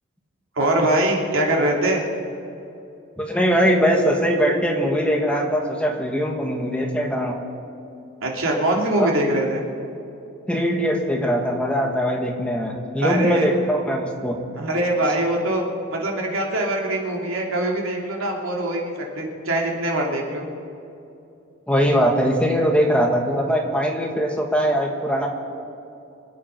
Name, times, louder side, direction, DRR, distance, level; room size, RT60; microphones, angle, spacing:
voice 1, 0.5-2.0 8.2-9.6 13.0-13.5 14.6-15.6 15.9-20.4, right 1 dB, 75° right, -1 dB, 2.8 m, -23 dB
voice 2, 3.2-7.4 9.0-9.2 10.5-14.4 21.7-25.3, equal, 5° left, 1 dB, 1.6 m, -21 dB
26.0 x 8.7 x 5.9 m, 2.8 s
head